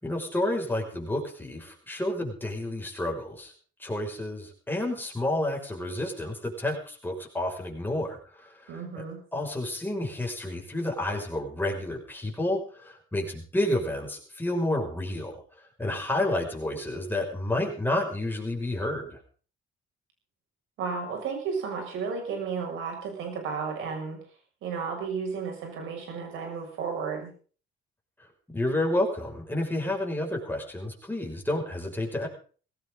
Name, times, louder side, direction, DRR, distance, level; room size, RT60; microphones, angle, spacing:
voice 1, 0.0-3.5 3.8-9.0 9.3-15.4 15.8-19.2 28.5-32.3, left 1 dB, 10° left, 0 dB, 6.1 m, -30 dB
voice 2, 8.7-9.2 20.8-24.2 24.6-27.3, right 5 dB, 90° right, 3 dB, 6.5 m, -33 dB
18.5 x 16.5 x 3.9 m, 0.42 s
cardioid pair, 90°, 20 cm